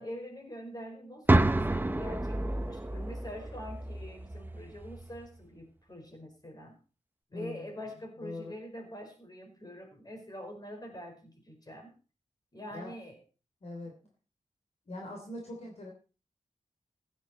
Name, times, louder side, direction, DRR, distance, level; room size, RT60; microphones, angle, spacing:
voice 1, 0.0-6.8 7.3-12.0 12.5-13.2, equal, 30° left, 3 dB, 4.9 m, -44 dB
sound 1, 1.3-5.2, right 2 dB, 15° right, 0.8 m, -29 dB
voice 2, 7.3-7.7 8.2-8.5 12.7-12.9 13.6-13.9 14.9-15.9, left 2 dB, 55° left, 1 dB, 3.3 m, -42 dB
15.5 x 10.0 x 4.4 m, 0.35 s
wide cardioid pair, 100°, 13 cm